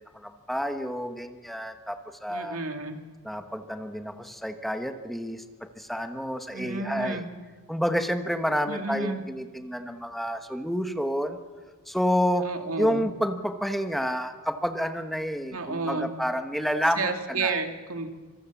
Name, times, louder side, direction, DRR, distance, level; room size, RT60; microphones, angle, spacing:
voice 1, 0.0-2.6 3.2-7.3 7.7-11.4 11.9-12.5 12.8-17.6, equal, ahead, 7 dB, 1.2 m, -29 dB
voice 2, 2.3-3.0 6.5-7.3 8.7-9.2 12.4-13.1 15.5-16.1 17.0-18.1, right 4 dB, 85° right, 5 dB, 2.3 m, -31 dB
26.0 x 24.5 x 7.1 m, 1.4 s
head